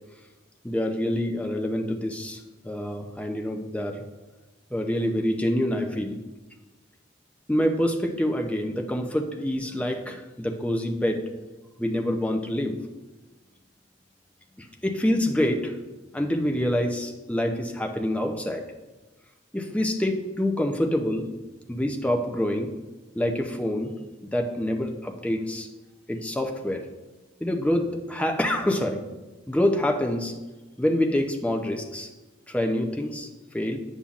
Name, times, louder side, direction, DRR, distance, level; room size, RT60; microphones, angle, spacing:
voice 1, 0.6-4.0 4.7-6.2 7.5-11.2 11.8-12.8 14.6-15.8 16.1-18.6 19.5-21.3 21.7-22.7 23.1-23.9 24.2-25.7 26.1-26.9 27.4-29.0 29.5-30.3 30.8-32.1 32.5-33.3 33.5-33.8, left 1 dB, 5° left, 3 dB, 0.5 m, -26 dB
8.6 x 5.5 x 2.4 m, 1.2 s
head